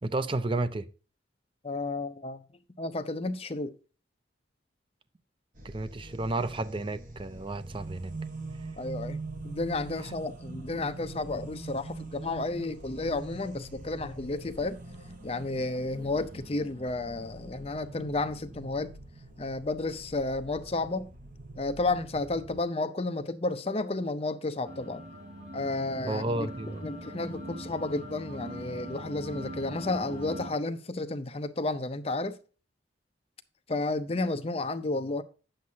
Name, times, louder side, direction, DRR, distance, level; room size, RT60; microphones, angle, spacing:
voice 1, 0.0-0.9 5.6-8.1 26.1-26.9, right 2 dB, 25° right, 0.5 m, -32 dB
voice 2, 1.6-2.4 2.8-3.8 8.8-9.2 9.4-14.8 15.2-18.9 19.4-21.1 21.6-25.0 25.5-26.5 26.8-32.4 33.7-35.2, left 2 dB, 30° left, 0.6 m, -32 dB
sound 1, 5.5-22.6, right 2 dB, 45° right, 1.2 m, -43 dB
sound 2, 24.6-30.5, equal, 60° right, 3.1 m, -42 dB
9.5 x 7.9 x 2.8 m
head